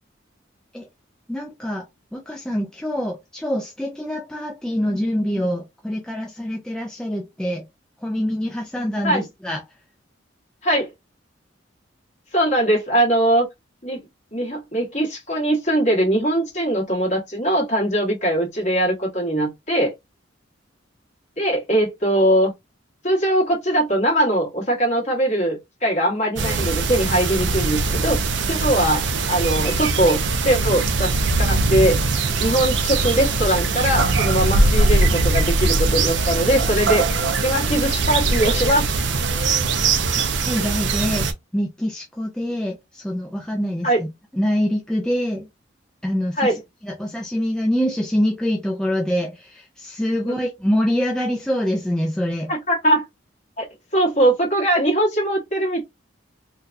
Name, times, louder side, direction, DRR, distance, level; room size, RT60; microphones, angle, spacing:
voice 1, 1.3-1.8 2.1-7.6 8.0-9.6 40.4-41.3 41.5-44.1 44.3-45.5 46.0-46.5 46.8-52.5, equal, 5° left, 0.4 m, -25 dB
voice 2, 12.3-13.5 13.8-19.9 21.4-22.5 23.0-28.2 28.5-30.2 30.4-31.1 31.4-32.0 32.4-37.1 37.4-39.0 43.8-44.0 46.4-46.5 50.2-50.3 52.5-53.1 53.6-53.7 53.9-55.8, right 1 dB, 40° left, 1.7 m, -21 dB
sound 1, 26.4-41.3, right 3 dB, 70° right, 0.5 m, -21 dB
3.8 x 2.3 x 2.6 m
head